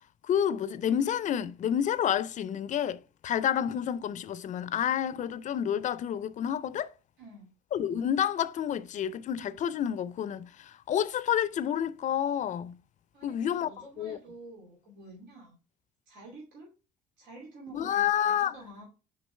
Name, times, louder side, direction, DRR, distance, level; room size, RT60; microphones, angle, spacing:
voice 1, 0.2-6.9 7.7-12.8 13.2-13.7 14.0-14.2 17.7-18.5, left 9 dB, 45° left, 0.4 m, -29 dB
voice 2, 7.2-7.5 13.1-15.6 16.1-16.7 17.2-18.8, right 2 dB, 90° right, 2.6 m, -49 dB
6.2 x 4.9 x 3.2 m
cardioid pair, 110°, 17 cm